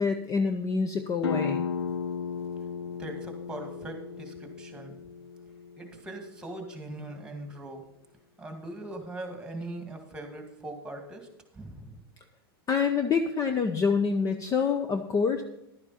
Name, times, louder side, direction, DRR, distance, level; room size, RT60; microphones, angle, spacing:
voice 1, 0.0-1.7 12.7-15.4, left 5 dB, 25° left, 8 dB, 0.7 m, -26 dB
sound 1, 1.2-6.6, left 6 dB, 80° left, 0.9 m, -35 dB
voice 2, 3.0-5.0 5.8-7.9 8.4-12.0, right 2 dB, 5° right, 4 dB, 2.1 m, -41 dB
11.5 x 9.8 x 4.2 m, 0.83 s
hypercardioid pair, 120°, 13 cm